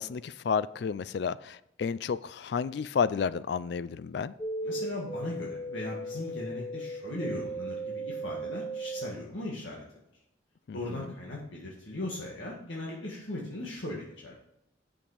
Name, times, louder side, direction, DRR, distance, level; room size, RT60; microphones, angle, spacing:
voice 1, 0.0-4.3 10.7-11.1, left 6 dB, 60° left, 0.3 m, -31 dB
sound 1, 4.4-9.2, right 2 dB, 10° left, 0.6 m, -36 dB
voice 2, 4.6-9.8 10.7-14.4, left 1 dB, 75° left, 1.9 m, -38 dB
8.5 x 7.1 x 5.0 m
head